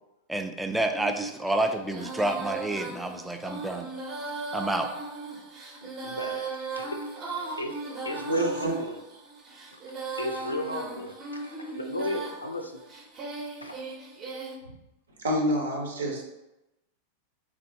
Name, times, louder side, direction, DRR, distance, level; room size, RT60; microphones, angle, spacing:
voice 1, 0.3-3.9 4.5-4.9, right 1 dB, 5° right, 5 dB, 0.3 m, -29 dB
Female singing, 0.9-14.6, right 3 dB, 30° right, 0.8 m, -38 dB
voice 2, 5.8-9.0 9.7-9.8 10.1-12.8 13.6-13.8 14.6-14.8, left 1 dB, 80° left, 4 dB, 0.4 m, -35 dB
voice 3, 8.3-8.7 15.2-16.2, right 1 dB, 65° right, 1 dB, 0.8 m, -27 dB
3.6 x 3.3 x 2.7 m, 0.95 s
figure-of-eight pair, 90°, 0 cm